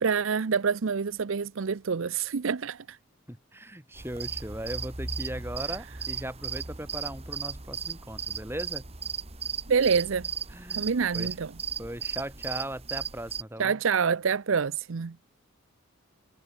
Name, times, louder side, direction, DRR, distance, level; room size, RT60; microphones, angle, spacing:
voice 1, 0.0-3.0 9.7-10.3 10.8-11.5 13.6-15.2, right 6 dB, 65° right, 0.6 m, -26 dB
voice 2, 3.3-8.8 10.5-10.9 11.1-11.3 11.8-13.8, right 1 dB, 10° right, 4.9 m, -38 dB
sound 1, 3.9-13.4, right 6 dB, 30° right, 1.7 m, -36 dB
head